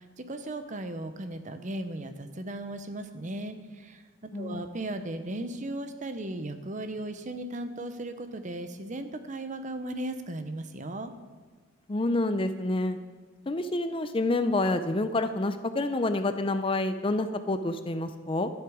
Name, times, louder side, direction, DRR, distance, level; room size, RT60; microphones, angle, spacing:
voice 1, 0.0-4.0 4.3-11.1, right 1 dB, 35° right, 9 dB, 0.7 m, -36 dB
voice 2, 4.3-4.7 11.9-13.0 13.5-18.5, left 2 dB, 25° left, 10 dB, 0.5 m, -28 dB
11.5 x 10.5 x 4.8 m, 1.5 s
head